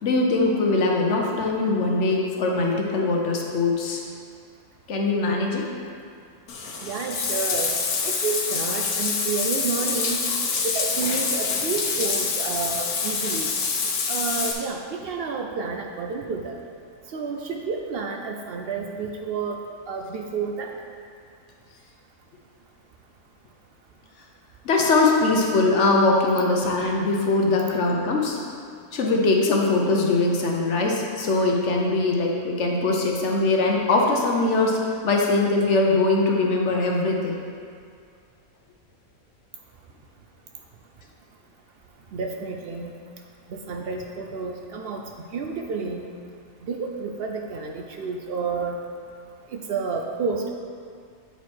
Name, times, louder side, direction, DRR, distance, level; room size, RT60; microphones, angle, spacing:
voice 1, 0.0-4.0 4.9-5.7 24.6-28.4 28.9-34.8 35.0-37.4, left 3 dB, 60° left, 0 dB, 1.0 m, -21 dB
Bathtub (filling or washing), 6.5-14.5, left 5 dB, 80° left, 1.3 m, -26 dB
voice 2, 6.8-7.7 8.0-10.2 10.6-13.5 14.1-16.6 17.1-19.6 19.9-20.7 42.1-42.9 43.5-45.0 45.3-46.1 46.6-48.8 49.5-50.5, right 5 dB, 70° right, 2 dB, 0.5 m, -30 dB
8.2 x 4.6 x 4.4 m, 2.2 s
omnidirectional pair, 1.5 m